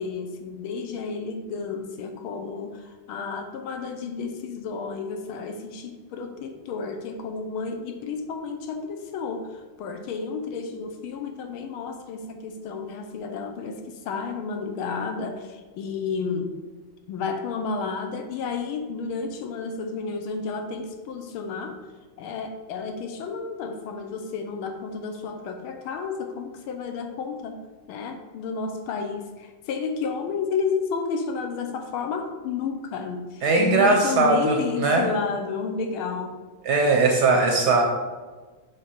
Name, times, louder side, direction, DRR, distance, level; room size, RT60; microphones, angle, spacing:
voice 1, 0.0-16.6 17.1-21.8 22.2-27.6 27.9-36.4, left 5 dB, 75° left, 6 dB, 1.5 m, -31 dB
voice 2, 33.4-35.1 36.6-37.8, right 3 dB, 65° right, 2 dB, 1.1 m, -20 dB
7.4 x 3.4 x 5.7 m, 1.3 s
omnidirectional pair, 2.4 m